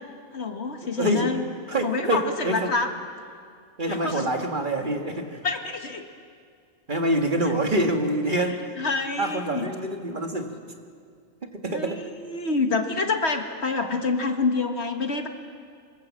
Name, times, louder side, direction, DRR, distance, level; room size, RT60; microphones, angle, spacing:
voice 1, 0.3-1.4 1.8-2.9 3.9-4.3 5.4-6.1 8.3-8.5 8.8-9.7 11.7-15.3, left 4 dB, 55° left, 5 dB, 1.8 m, -27 dB
voice 2, 1.0-1.3 1.7-2.7 3.8-5.4 6.9-8.8 9.2-10.5 11.5-12.0, right 1 dB, 35° right, 3 dB, 1.9 m, -26 dB
25.5 x 24.5 x 7.5 m, 2.2 s
omnidirectional pair, 1.4 m